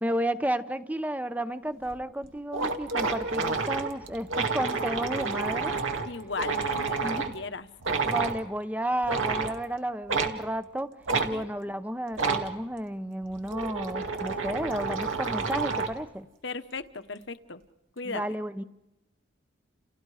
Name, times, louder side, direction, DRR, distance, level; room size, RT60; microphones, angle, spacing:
voice 1, 0.0-5.8 7.0-7.4 8.0-10.9 11.2-16.3 18.1-18.6, right 1 dB, 10° right, 11 dB, 0.8 m, -32 dB
sound 1, 1.9-2.0 2.2-2.3 2.5-7.3 7.8-8.4 9.0-9.6 10.1-10.3 11.1-11.3 12.1-12.5 13.2-16.0, right 4 dB, 80° right, 2.3 m, -29 dB
voice 2, 6.0-7.7 11.3-11.4 16.4-17.6 18.0-18.2, left 4 dB, 65° left, 10 dB, 1.2 m, -37 dB
30.0 x 30.0 x 5.0 m, 0.96 s
head